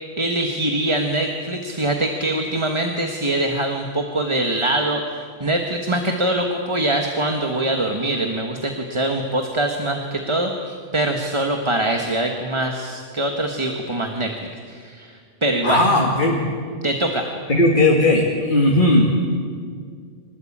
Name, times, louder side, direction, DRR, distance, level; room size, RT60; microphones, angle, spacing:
voice 1, 0.2-14.3 14.7-15.8 16.8-17.3, right 1 dB, 25° right, 3 dB, 1.5 m, -23 dB
voice 2, 15.6-16.4 17.5-19.1, left 1 dB, 40° left, -1 dB, 2.4 m, -17 dB
25.5 x 20.0 x 8.8 m, 2.1 s
omnidirectional pair, 1.2 m